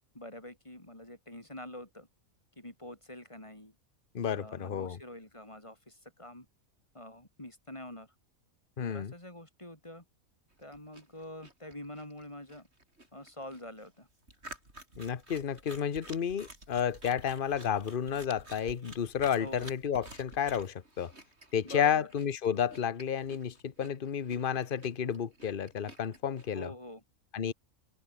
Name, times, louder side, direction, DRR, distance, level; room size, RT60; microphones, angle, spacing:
voice 1, 0.0-2.1 2.6-3.7 4.3-6.5 6.9-8.1 8.9-10.0 10.6-12.7 13.1-14.1 19.4-19.7 21.6-22.1 26.5-27.0, left 1 dB, 20° left, 3.9 m, -46 dB
voice 2, 4.1-5.0 8.8-9.1 15.0-21.1 21.5-26.7 27.3-27.5, left 8 dB, 40° left, 1.2 m, -31 dB
sound 1, 10.5-26.7, right 2 dB, 50° right, 6.4 m, -51 dB
omnidirectional pair, 1.5 m